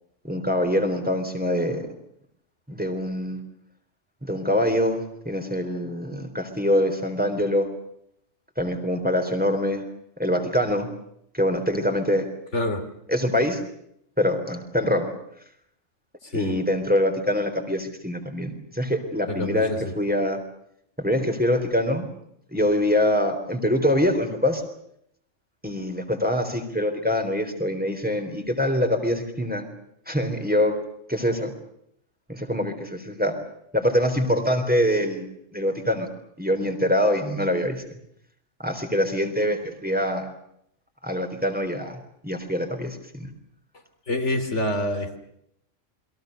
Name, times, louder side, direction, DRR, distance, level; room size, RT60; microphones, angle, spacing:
voice 1, 0.2-1.9 2.7-3.4 4.2-7.7 8.6-9.8 10.2-10.9 11.3-12.3 13.1-13.6 14.2-15.1 16.3-20.4 21.0-22.1 22.5-24.6 25.6-29.7 30.1-30.8 31.1-31.5 32.3-33.3 33.7-35.3 35.5-36.1 36.4-37.8 38.6-40.2 41.0-43.3, left 1 dB, 5° right, 5 dB, 3.8 m, -24 dB
voice 2, 12.5-12.8 16.3-16.6 19.3-19.8 44.1-45.2, left 1 dB, 70° left, 7 dB, 3.3 m, -26 dB
29.0 x 22.5 x 6.7 m, 0.73 s
omnidirectional pair, 1.3 m